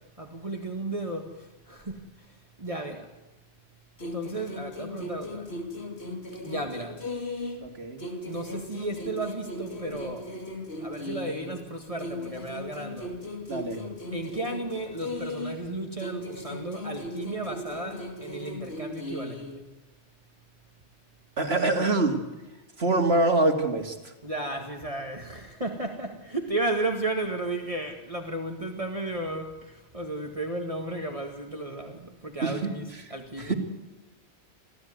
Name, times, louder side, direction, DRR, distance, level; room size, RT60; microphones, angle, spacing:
voice 1, 0.0-3.1 4.1-5.5 6.4-7.0 8.3-10.3 10.8-13.1 14.1-19.6 24.2-33.5, right 2 dB, 30° right, 2 dB, 2.0 m, -34 dB
sound 1, 4.0-7.7 8.0-11.6 12.0-15.7 16.0-19.6, left 2 dB, 60° left, 3.2 m, -37 dB
voice 2, 7.6-8.0 13.5-13.8 21.4-22.2 22.8-24.0 32.4-32.7 33.4-33.5, right 2 dB, 60° right, 5 dB, 2.7 m, -24 dB
25.0 x 15.5 x 9.5 m, 1.1 s
omnidirectional pair, 1.2 m